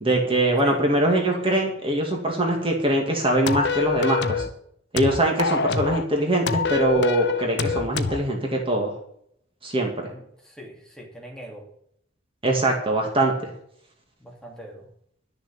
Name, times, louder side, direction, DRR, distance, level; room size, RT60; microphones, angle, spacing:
voice 1, 0.0-4.4 4.9-8.9 9.6-10.1 12.4-13.5, right 1 dB, 30° right, 1 dB, 2.3 m, -22 dB
sound 1, 3.5-4.5 5.0-6.1 6.5-8.2, left 5 dB, 65° left, 1.0 m, -25 dB
voice 2, 10.1-11.6 14.2-14.9, equal, 5° left, -1 dB, 3.0 m, -42 dB
11.5 x 7.0 x 8.2 m, 0.69 s
head